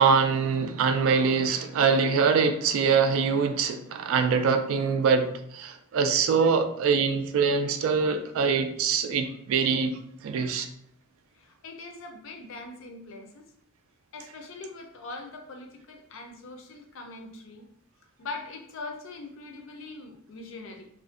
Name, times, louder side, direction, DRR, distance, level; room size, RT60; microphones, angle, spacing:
voice 1, 0.0-9.9 10.2-10.7, right 5 dB, 70° right, 7 dB, 0.3 m, -24 dB
voice 2, 11.3-13.5 14.1-17.7 18.2-20.9, left 3 dB, 65° left, 4 dB, 0.5 m, -42 dB
2.4 x 2.1 x 2.4 m, 0.72 s
head